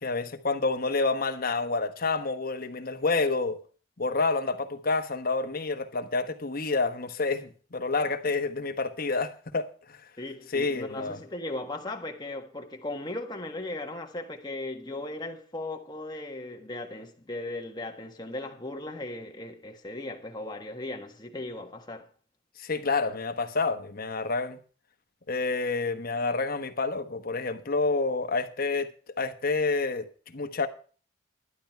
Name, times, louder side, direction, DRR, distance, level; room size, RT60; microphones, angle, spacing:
voice 1, 0.0-3.6 4.0-10.0 10.5-11.2 22.6-24.6 25.3-28.9 29.2-30.7, left 3 dB, 50° left, 1.1 m, -28 dB
voice 2, 10.2-22.1, left 2 dB, 20° left, 1.5 m, -37 dB
12.0 x 10.5 x 4.5 m
head